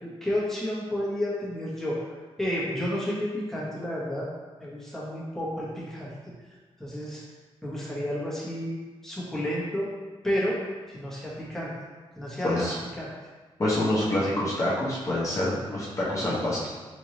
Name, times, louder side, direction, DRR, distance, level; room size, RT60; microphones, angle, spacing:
voice 1, 0.0-2.0 2.4-4.3 4.6-6.1 6.8-7.2 7.6-8.8 9.0-9.9 10.2-10.6 10.9-11.7 12.2-13.1, equal, 5° left, -7 dB, 1.3 m, -31 dB
voice 2, 12.4-12.8 13.6-16.7, left 1 dB, 30° left, -8 dB, 1.0 m, -26 dB
4.0 x 3.6 x 3.1 m, 1.3 s
wide cardioid pair, 120°, 10 cm